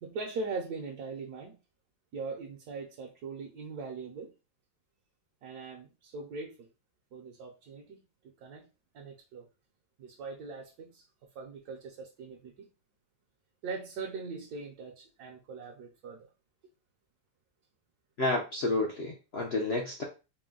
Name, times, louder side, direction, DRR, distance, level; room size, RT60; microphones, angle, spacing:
voice 1, 0.0-1.6 2.1-4.3 5.4-6.7 7.1-8.0 8.4-8.7 8.9-9.5 10.0-11.0 11.3-12.7 13.6-16.3, right 4 dB, 65° right, 1.2 m, -41 dB
voice 2, 18.2-20.0, left 2 dB, 60° left, 0.6 m, -30 dB
4.2 x 2.2 x 3.7 m
omnidirectional pair, 1.9 m